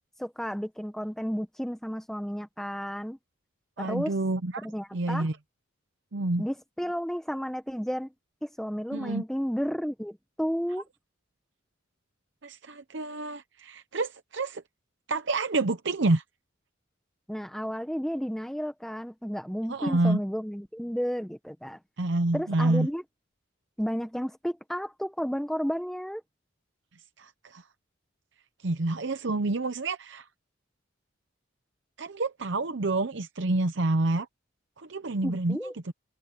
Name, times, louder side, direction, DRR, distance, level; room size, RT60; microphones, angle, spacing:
voice 1, 0.2-3.2 3.8-4.1 4.6-5.3 6.4-8.1 8.4-10.9 17.3-21.8 22.3-23.0 23.8-26.2 35.2-35.7, equal, ahead, 1.0 m, -32 dB
voice 2, 3.8-4.7 4.9-5.4 6.1-6.4 8.9-9.2 12.4-14.6 15.1-16.2 19.7-20.2 22.0-22.9 27.2-27.6 28.6-30.3 32.0-34.3 34.8-35.6 35.8-35.9, right 2 dB, 60° right, 0.8 m, -28 dB
head